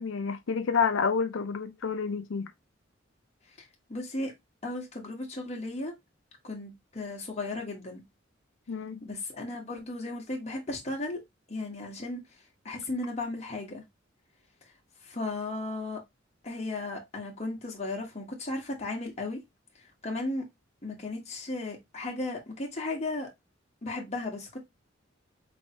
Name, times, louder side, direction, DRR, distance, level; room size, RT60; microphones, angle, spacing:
voice 1, 0.0-2.5 8.7-9.0, left 5 dB, 85° left, 0.5 m, -29 dB
voice 2, 3.6-4.3 4.6-5.9 6.4-8.0 9.0-11.2 11.5-12.2 12.6-13.8 15.0-16.0 16.4-19.4 20.0-20.4 20.8-23.3 23.8-24.6, left 2 dB, 35° left, 1.3 m, -35 dB
4.3 x 3.1 x 2.8 m
head